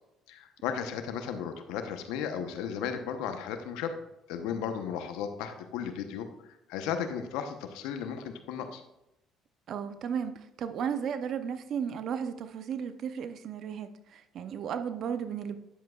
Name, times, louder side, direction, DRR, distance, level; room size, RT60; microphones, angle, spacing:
voice 1, 0.3-4.0 4.3-8.8, left 7 dB, 85° left, 7 dB, 0.9 m, -35 dB
voice 2, 9.7-15.6, right 7 dB, 60° right, 10 dB, 0.6 m, -34 dB
10.0 x 7.5 x 2.4 m, 0.89 s
supercardioid pair, 85°, 0 cm